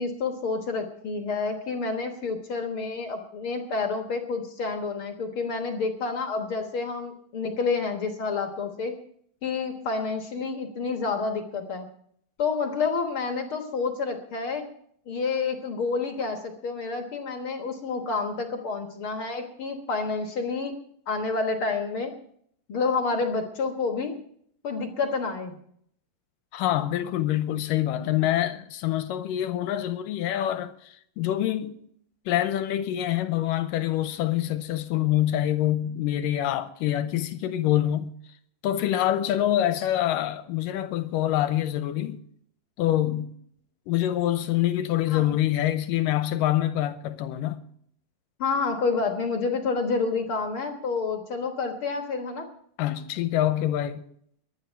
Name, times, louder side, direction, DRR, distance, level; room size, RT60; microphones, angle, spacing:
voice 1, 0.0-8.9 9.4-11.9 12.4-14.7 15.1-20.7 21.1-22.1 22.7-24.1 24.6-25.5 45.1-45.4 48.4-52.4, left 4 dB, 55° left, 1.5 m, -29 dB
voice 2, 26.5-31.8 32.3-38.1 38.6-42.2 42.8-43.3 43.9-47.6 52.8-54.0, left 12 dB, 80° left, 2.3 m, -26 dB
22.5 x 9.8 x 4.5 m
omnidirectional pair, 4.2 m